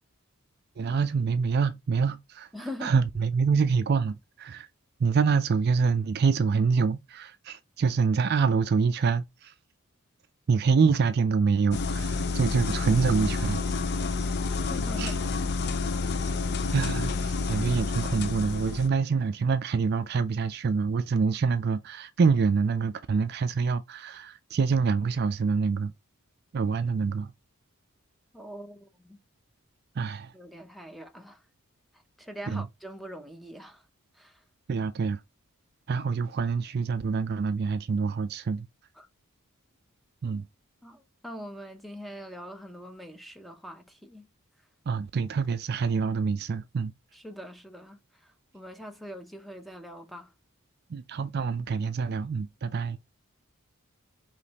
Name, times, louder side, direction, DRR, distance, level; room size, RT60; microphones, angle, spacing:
voice 1, 0.8-2.5 2.8-4.7 5.0-9.5 10.5-13.6 15.0-15.1 16.7-25.9 26.5-27.3 30.0-30.3 32.5-32.7 34.7-35.2 35.9-38.7 40.2-40.4 44.9-46.9 50.9-53.0, right 5 dB, 45° right, 0.3 m, -26 dB
voice 2, 2.5-3.0 14.7-15.6 28.3-29.2 30.3-31.4 32.2-33.9 34.1-34.4 39.0-39.1 40.8-44.3 47.1-50.3, equal, ahead, 0.6 m, -43 dB
sound 1, 11.7-18.9, left 4 dB, 50° left, 0.4 m, -29 dB
5.0 x 3.1 x 2.8 m
head